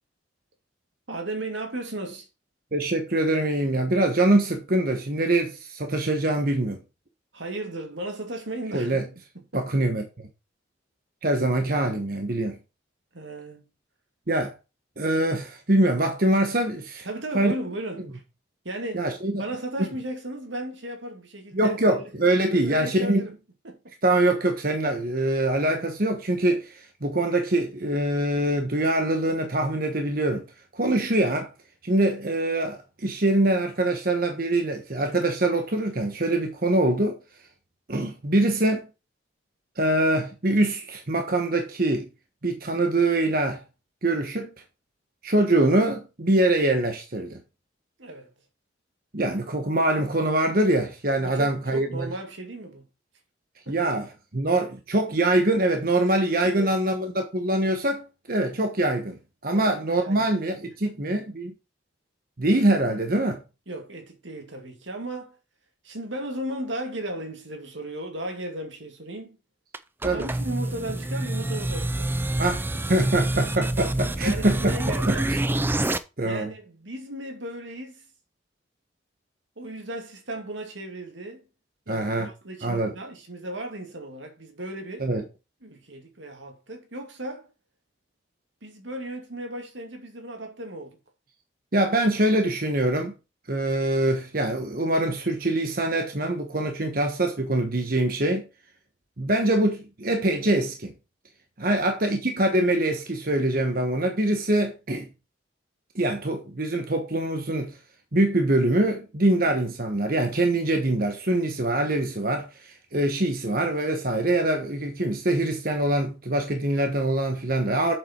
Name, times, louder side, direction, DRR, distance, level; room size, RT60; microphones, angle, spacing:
voice 1, 1.1-2.3 7.3-9.0 9.3-9.8 13.1-13.7 17.0-18.2 18.6-22.0 22.5-23.3 23.6-23.8 48.0-48.3 51.2-52.8 53.7-53.8 56.4-56.8 59.5-60.3 60.8-61.0 63.7-65.4 65.8-69.4 70.1-72.4 74.2-75.3 76.2-78.1 79.6-81.4 81.9-85.1 85.6-87.5 88.6-91.0 101.6-101.9, right 1 dB, 80° right, 2.5 m, -35 dB
voice 2, 2.7-6.8 8.7-9.0 9.5-10.0 11.2-12.6 14.3-14.5 15.0-17.1 17.3-17.5 18.9-19.4 21.5-23.3 24.0-30.4 30.7-31.5 31.8-37.2 37.9-38.9 39.8-42.1 42.4-43.6 44.0-44.5 45.2-47.4 49.1-52.1 53.7-61.5 62.4-63.4 70.0-70.2 72.4-72.6 72.9-74.7 75.1-75.2 76.2-76.5 81.9-82.3 82.6-82.9 85.0-85.2 91.7-93.1 93.5-98.5 99.2-100.9 101.6-105.1 105.9-107.7 108.1-117.9, right 1 dB, 50° right, 1.2 m, -24 dB
sound 1, 69.7-76.0, right 1 dB, 10° right, 0.4 m, -27 dB
7.9 x 6.9 x 4.4 m
head